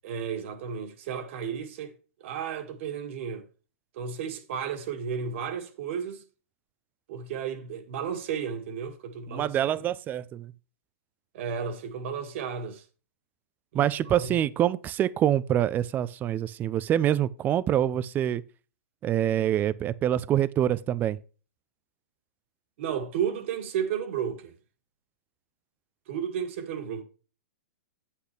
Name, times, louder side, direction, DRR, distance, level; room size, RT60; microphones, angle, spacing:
voice 1, 0.0-1.9 2.2-3.4 3.9-6.2 7.1-9.8 11.3-12.8 13.7-14.3 22.8-24.5 26.1-27.0, right 7 dB, 55° right, 2.0 m, -33 dB
voice 2, 9.3-10.5 13.7-18.4 19.0-21.2, right 11 dB, 25° right, 0.5 m, -25 dB
8.3 x 8.3 x 3.3 m
hypercardioid pair, 130°, 8 cm